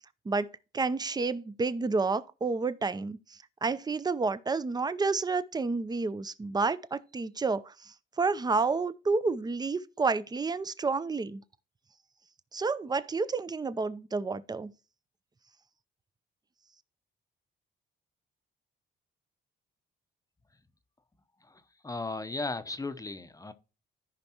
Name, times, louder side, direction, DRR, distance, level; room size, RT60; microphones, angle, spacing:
voice 1, 0.7-3.2 3.6-11.4 12.5-14.7, right 4 dB, 20° right, 0.6 m, -30 dB
voice 2, 21.4-23.5, left 3 dB, 15° left, 0.7 m, -36 dB
14.0 x 5.2 x 2.9 m
cardioid pair, 90°, 20 cm